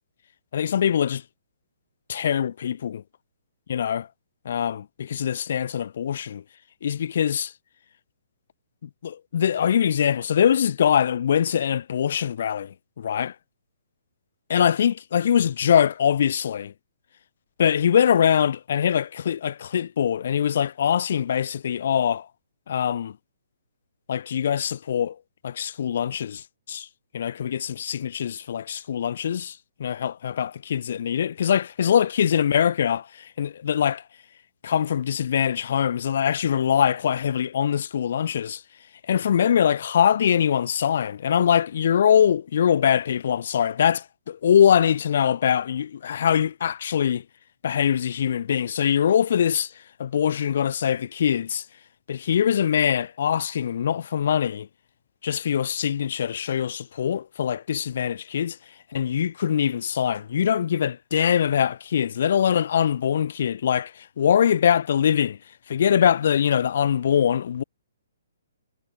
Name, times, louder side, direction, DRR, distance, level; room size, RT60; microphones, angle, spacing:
voice 1, 0.5-1.2 2.1-3.0 3.7-4.1 4.4-6.4 6.8-7.5 8.8-13.3 14.5-16.7 17.6-22.3 22.7-23.2 24.1-25.2 25.4-26.9 27.1-34.0 34.6-38.6 39.1-47.2 47.6-49.7 50.0-51.6 52.1-54.7 55.2-58.6 58.9-65.4 65.7-67.6, left 8 dB, 50° left, 0.5 m, -23 dB
hypercardioid pair, 170°, 0 cm